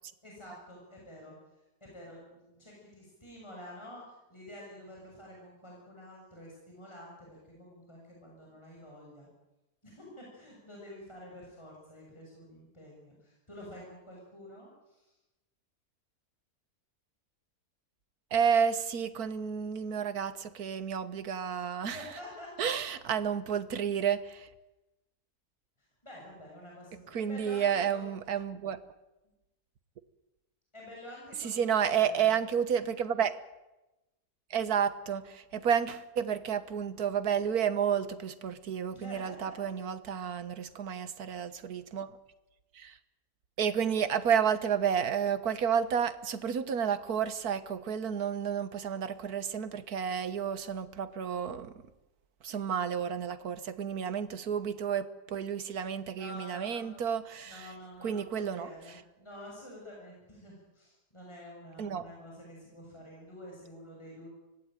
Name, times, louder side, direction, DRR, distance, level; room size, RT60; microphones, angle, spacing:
voice 1, 0.2-1.3 1.8-9.3 9.8-15.1 21.8-22.7 26.0-28.0 30.7-32.3 38.9-39.7 56.2-56.9 57.5-64.3, left 1 dB, 15° left, -3 dB, 6.8 m, -49 dB
voice 2, 18.3-22.0 22.6-24.5 27.1-28.8 31.4-33.4 34.5-42.2 42.7-43.0 43.6-51.7 52.4-57.7 58.0-58.7 61.8-62.0, right 8 dB, 70° right, 13 dB, 1.7 m, -31 dB
24.5 x 18.0 x 9.1 m, 1.0 s
omnidirectional pair, 1.7 m